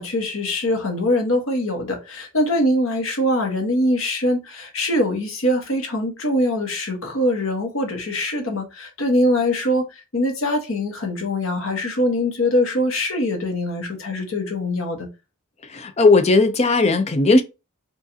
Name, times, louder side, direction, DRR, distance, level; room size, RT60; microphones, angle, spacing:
voice 1, 0.0-9.9 10.1-15.1, left 1 dB, 75° left, 1.2 m, -23 dB
voice 2, 15.7-17.4, left 3 dB, 30° left, 0.5 m, -16 dB
4.7 x 2.5 x 2.7 m
head